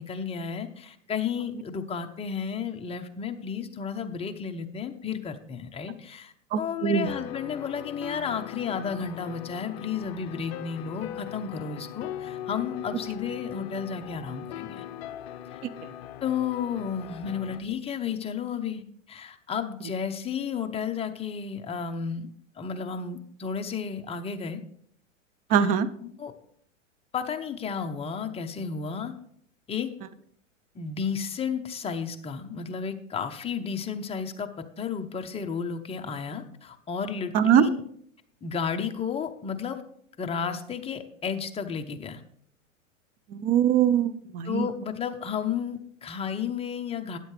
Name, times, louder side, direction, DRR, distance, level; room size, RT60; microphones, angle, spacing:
voice 1, 0.0-14.8 15.5-15.6 16.2-18.8 19.1-22.3 22.6-24.6 26.0-26.3 27.1-29.1 29.7-29.9 30.7-37.8 38.4-39.8 40.2-42.2 44.5-47.2, left 6 dB, 15° left, 6 dB, 0.8 m, -32 dB
voice 2, 6.5-7.1 25.5-25.9 37.3-37.6 43.3-44.7, right 9 dB, 25° right, 13 dB, 0.4 m, -22 dB
sound 1, 7.1-17.6, left 11 dB, 50° left, 0.6 m, -40 dB
12.5 x 9.2 x 3.3 m, 0.66 s
hypercardioid pair, 105°, 40 cm